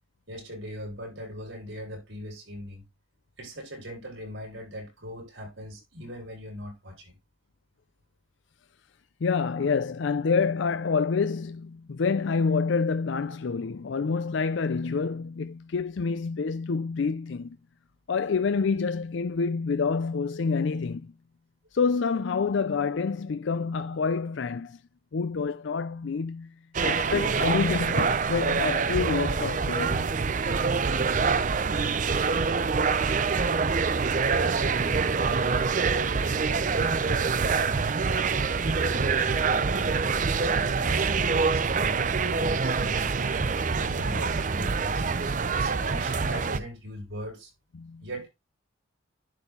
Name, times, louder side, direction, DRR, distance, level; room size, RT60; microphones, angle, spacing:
voice 1, 0.3-2.8 3.4-7.1 34.3-35.5 35.9-37.3 38.3-43.1 43.6-45.0 45.5-47.5 48.0-48.3, equal, 75° right, 6.7 m, -40 dB
voice 2, 9.2-17.6 18.1-21.1 21.7-24.8 25.1-26.5 26.8-30.1 37.7-37.9 47.7-48.1, left 5 dB, 70° left, 0.4 m, -27 dB
sound 1, 26.7-46.6, right 5 dB, 40° right, 0.5 m, -25 dB
11.0 x 4.4 x 3.8 m
head